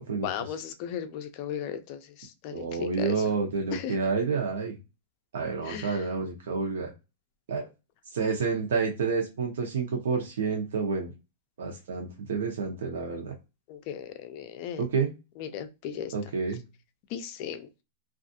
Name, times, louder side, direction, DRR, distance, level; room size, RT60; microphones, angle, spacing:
voice 1, 0.2-3.2 3.7-4.0 5.7-6.0 13.7-14.8 15.4-16.1 17.1-17.7, left 9 dB, 40° left, 9 dB, 0.3 m, -36 dB
voice 2, 2.5-4.8 5.3-6.9 7.5-7.7 8.1-11.1 11.6-13.3 14.8-15.1 16.1-16.6, right 5 dB, 85° right, 1 dB, 0.8 m, -29 dB
2.4 x 2.4 x 2.6 m, 0.27 s
supercardioid pair, 165°, 0 cm